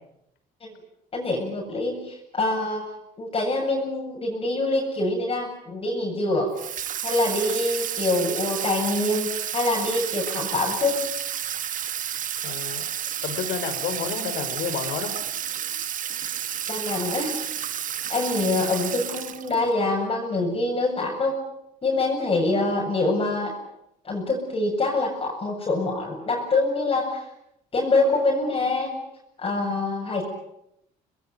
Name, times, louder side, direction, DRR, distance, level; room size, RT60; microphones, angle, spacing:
voice 1, 1.1-2.9 3.2-6.5 7.0-11.0 16.7-17.3 18.1-21.4 21.8-23.5 24.0-27.2 27.7-28.9 29.4-30.2, left 2 dB, 35° left, -1 dB, 7.6 m, -25 dB
Water tap faucet / Sink (filling or washing), 6.6-19.7, right 10 dB, 50° right, 1.3 m, -31 dB
voice 2, 12.4-12.8 13.2-15.1, left 7 dB, 75° left, 9 dB, 5.4 m, -30 dB
26.0 x 21.0 x 9.2 m, 0.81 s
cardioid pair, 110°, 17 cm